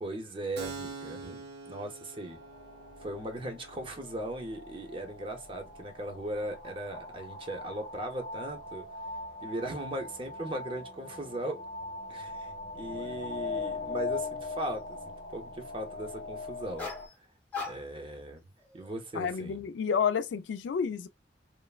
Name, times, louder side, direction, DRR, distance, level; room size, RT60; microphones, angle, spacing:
voice 1, 0.0-2.4 3.0-8.9 9.4-11.6 12.1-16.9 17.7-18.4 18.7-19.6, right 1 dB, 30° right, 0.6 m, -38 dB
Keyboard (musical), 0.6-7.9, right 4 dB, 70° right, 0.7 m, -48 dB
sound 1, 2.3-17.1, left 3 dB, 50° left, 0.7 m, -40 dB
sound 2, 16.8-17.1 17.5-18.1 18.6-18.9, left 4 dB, 10° left, 0.8 m, -39 dB
voice 2, 19.1-21.1, left 6 dB, 90° left, 0.3 m, -30 dB
3.2 x 2.0 x 2.3 m
head